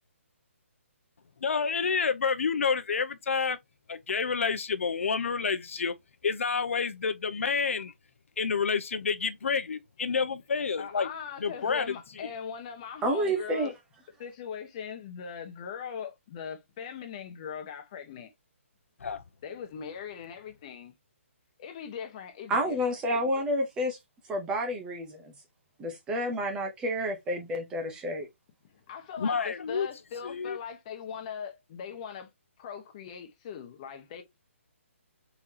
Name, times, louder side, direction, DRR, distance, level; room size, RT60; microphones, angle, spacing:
voice 1, 1.4-3.6 3.9-5.9 6.2-7.9 8.4-11.1 11.4-11.9 12.2-12.3 19.0-19.2 29.2-29.9 30.2-30.6, left 5 dB, 70° left, 0.7 m, -29 dB
voice 2, 10.8-13.7 14.2-18.3 19.4-20.9 21.6-23.4 28.7-32.3 32.6-34.2, left 7 dB, 25° left, 1.1 m, -40 dB
voice 3, 13.0-13.7 22.5-24.0 24.3-25.3 25.8-28.3, equal, 10° right, 0.7 m, -29 dB
4.5 x 3.9 x 2.8 m
hypercardioid pair, 165°, 7 cm